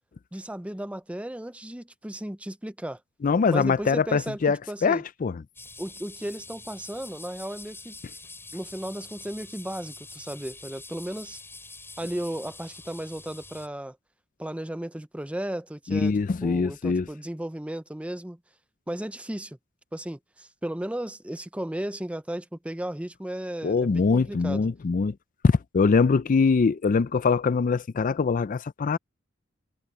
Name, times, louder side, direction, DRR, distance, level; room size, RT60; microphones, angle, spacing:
voice 1, 0.3-3.0 3.5-4.4 4.7-5.0 5.8-7.9 8.5-11.4 12.0-14.0 14.4-16.1 16.4-18.4 18.9-19.6 19.9-24.7, right 1 dB, 5° right, 0.6 m, -35 dB
voice 2, 3.2-4.6 4.8-5.4 15.9-17.1 23.6-25.1 25.4-29.0, left 4 dB, 40° left, 0.4 m, -23 dB
sound 1, 5.5-13.7, left 3 dB, 10° left, 6.2 m, -45 dB
head